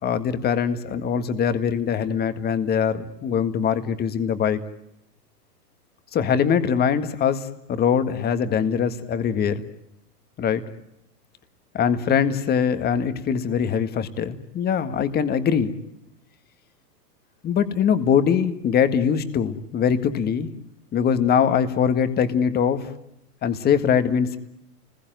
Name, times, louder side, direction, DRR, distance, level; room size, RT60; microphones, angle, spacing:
voice 1, 0.0-4.6 6.1-9.6 10.4-10.6 11.7-15.7 17.4-20.5 20.9-22.9 23.4-24.4, left 7 dB, 20° left, 11 dB, 1.8 m, -22 dB
29.5 x 21.0 x 9.2 m, 0.86 s
hypercardioid pair, 135°, 48 cm